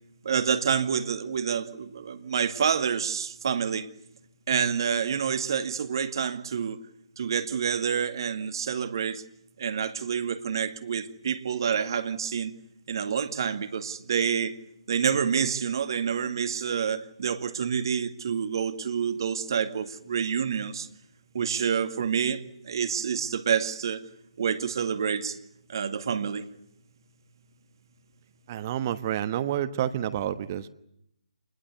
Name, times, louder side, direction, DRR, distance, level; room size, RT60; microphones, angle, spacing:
voice 1, 0.2-3.9 4.5-6.8 7.2-9.2 9.6-12.5 12.9-14.6 14.9-20.9 21.3-24.0 24.4-25.4 25.7-26.5, right 7 dB, 45° right, 2.2 m, -28 dB
voice 2, 28.5-30.7, right 11 dB, 30° right, 1.2 m, -29 dB
27.5 x 21.5 x 8.3 m
figure-of-eight pair, 145°, 3 cm